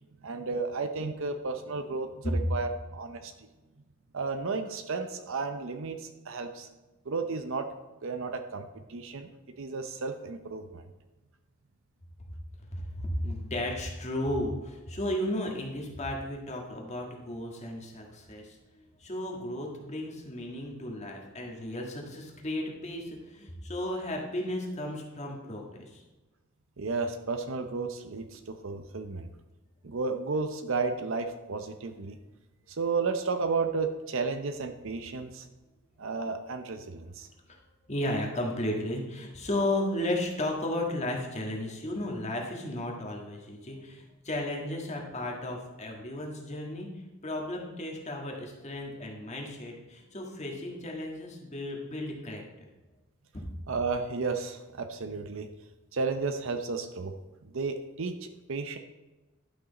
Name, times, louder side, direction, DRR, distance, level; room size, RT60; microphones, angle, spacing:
voice 1, 0.2-3.5 4.1-6.7 7.1-7.7 8.0-9.3 9.6-10.8 26.8-29.3 29.8-32.2 32.7-35.5 36.0-37.3 53.7-55.5 55.9-57.1 57.4-58.8, right 4 dB, 65° right, 7 dB, 0.7 m, -33 dB
voice 2, 12.7-26.0 37.5-37.6 37.9-46.9 47.2-52.7, left 1 dB, 35° left, 0 dB, 1.7 m, -34 dB
11.0 x 6.1 x 4.0 m, 1.1 s
head